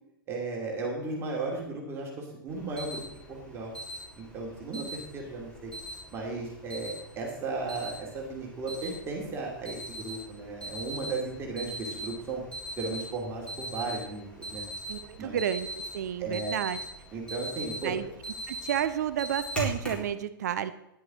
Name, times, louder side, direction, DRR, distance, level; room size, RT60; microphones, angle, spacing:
voice 1, 0.3-3.7 4.2-5.7 6.1-12.4 12.8-14.6 15.2-15.4 16.2-16.5 17.1-17.9, right 3 dB, 20° right, -1 dB, 2.7 m, -35 dB
Alarm, 2.5-20.1, right 1 dB, 10° left, 4.2 m, -41 dB
voice 2, 14.9-15.7 15.9-16.8 17.8-18.1 18.5-20.7, right 10 dB, 50° right, 12 dB, 0.7 m, -30 dB
12.5 x 11.0 x 3.9 m, 0.83 s
figure-of-eight pair, 110°, 12 cm